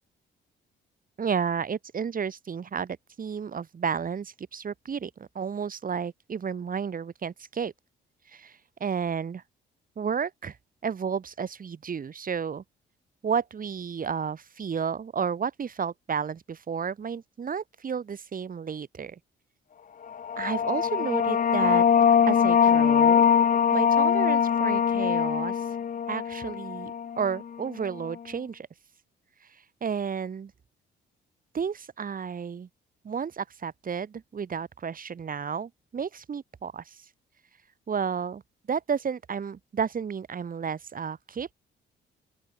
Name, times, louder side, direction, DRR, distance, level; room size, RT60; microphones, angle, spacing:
voice 1, 1.2-7.7 8.3-9.4 10.0-10.6 10.8-12.6 13.2-19.2 20.4-21.8 22.3-23.2 23.7-25.6 26.1-26.9 27.2-28.7 29.8-30.5 31.5-32.7 33.0-37.0 37.9-38.4 38.7-41.5, right 6 dB, 45° right, 4.7 m, -32 dB
sound 1, 20.1-27.4, left 7 dB, 40° left, 1.0 m, -22 dB
open air
cardioid pair, 90°, 20 cm